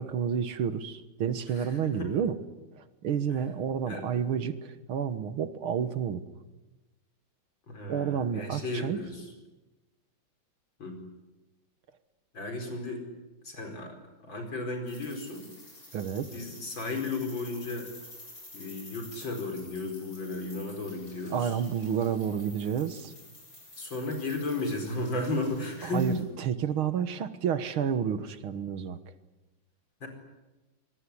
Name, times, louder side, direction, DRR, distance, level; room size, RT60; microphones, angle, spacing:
voice 1, 0.0-2.4 2.7-6.2 7.9-9.0 15.9-16.3 21.3-23.1 25.8-29.0, right 8 dB, 85° right, 12 dB, 2.2 m, -30 dB
voice 2, 1.5-2.1 3.9-4.1 7.7-9.3 10.8-11.0 12.3-13.0 13.4-15.5 16.3-17.9 18.5-21.6 23.8-26.2 30.0-30.1, left 2 dB, 65° left, 4 dB, 5.5 m, -34 dB
sound 1, 14.9-26.2, left 2 dB, 45° left, 7.5 m, -50 dB
24.0 x 22.0 x 10.0 m, 1.1 s
omnidirectional pair, 2.3 m